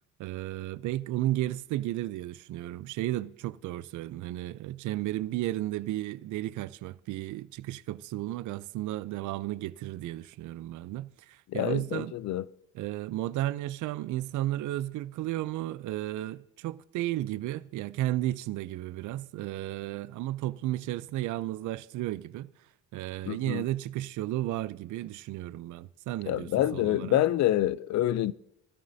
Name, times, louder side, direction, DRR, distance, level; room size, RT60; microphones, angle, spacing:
voice 1, 0.2-12.1 12.7-22.5 22.9-27.2, right 15 dB, 80° right, 0.5 m, -33 dB
voice 2, 11.5-12.4 23.3-23.6 26.3-28.3, left 13 dB, 65° left, 0.5 m, -27 dB
15.0 x 13.0 x 2.7 m
cardioid pair, 90°, 30 cm